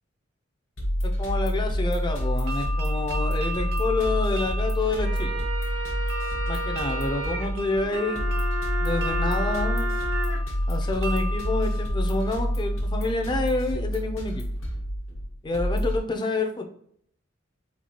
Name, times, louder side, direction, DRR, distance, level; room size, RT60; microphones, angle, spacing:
sound 1, 0.8-16.0, equal, 85° left, 1.1 m, -28 dB
voice 1, 1.0-5.4 6.5-8.2 8.8-9.9 10.7-14.4 15.4-16.7, left 2 dB, 25° left, 5 dB, 0.4 m, -28 dB
sound 2, 2.1-12.9, left 1 dB, 50° right, 0.6 m, -37 dB
sound 3, 4.8-10.4, right 1 dB, 70° right, 0.9 m, -33 dB
4.2 x 2.3 x 2.9 m, 0.65 s
head